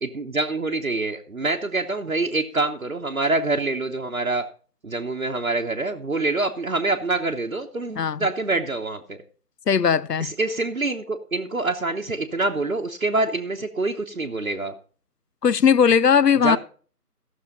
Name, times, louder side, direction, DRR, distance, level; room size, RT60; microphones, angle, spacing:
voice 1, 0.0-4.5 4.8-9.2 10.2-14.7 16.4-16.6, right 2 dB, 60° right, 1.0 m, -26 dB
voice 2, 9.7-10.3 15.4-16.6, left 7 dB, 80° left, 0.6 m, -18 dB
14.5 x 6.5 x 5.3 m
figure-of-eight pair, 165°, 48 cm